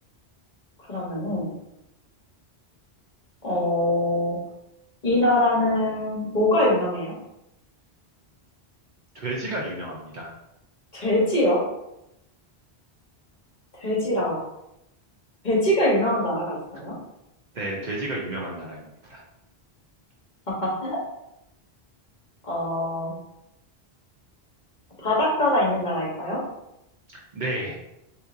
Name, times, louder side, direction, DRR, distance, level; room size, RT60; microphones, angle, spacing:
voice 1, 0.9-1.5 3.4-4.4 5.0-7.2 10.9-11.7 13.8-14.4 15.4-17.0 20.5-21.0 22.4-23.1 25.0-26.4, left 1 dB, 50° left, -4 dB, 1.1 m, -23 dB
voice 2, 9.1-10.3 17.5-19.2 27.3-27.8, right 1 dB, 55° right, -3 dB, 0.7 m, -31 dB
3.7 x 2.8 x 2.5 m, 0.85 s
omnidirectional pair, 1.1 m